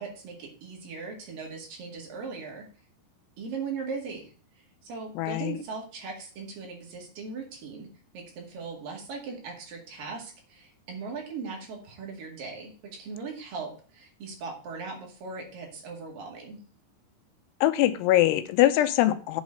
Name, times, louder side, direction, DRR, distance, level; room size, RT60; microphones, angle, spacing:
voice 1, 0.0-2.7 3.4-7.9 8.1-16.6, right 4 dB, 60° right, 0 dB, 3.6 m, -39 dB
voice 2, 5.2-5.5 17.6-19.4, left 14 dB, 90° left, 10 dB, 2.8 m, -22 dB
8.1 x 4.1 x 6.3 m, 0.40 s
omnidirectional pair, 4.7 m